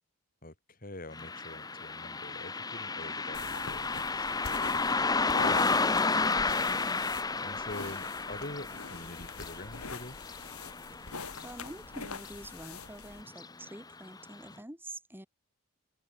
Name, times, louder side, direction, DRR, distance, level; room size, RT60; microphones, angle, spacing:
voice 1, 0.4-6.8 7.4-10.3, left 1 dB, 40° left, 4.7 m, -46 dB
Car passing by, 1.1-11.9 12.2-12.3 13.3-13.5 13.9-14.0 14.5-14.6, left 3 dB, 15° left, 0.9 m, -32 dB
sound 1, 3.3-13.2, left 4 dB, 85° left, 3.0 m, -44 dB
voice 2, 6.6-7.1 11.4-15.3, right 1 dB, 10° right, 4.6 m, -46 dB
head